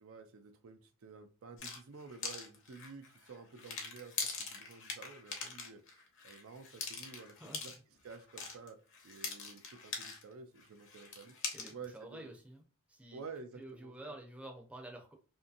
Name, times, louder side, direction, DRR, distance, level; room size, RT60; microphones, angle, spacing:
voice 1, 0.0-7.8 8.0-8.8 9.0-11.3 11.6-12.3 13.1-14.2, right 4 dB, 70° right, 8 dB, 0.4 m, -51 dB
sound 1, 1.6-10.3 10.6-11.8, left 5 dB, 60° left, 0.7 m, -43 dB
voice 2, 11.5-13.2 13.6-15.1, right 1 dB, 5° right, 1 dB, 0.5 m, -49 dB
2.7 x 2.6 x 2.4 m, 0.36 s
head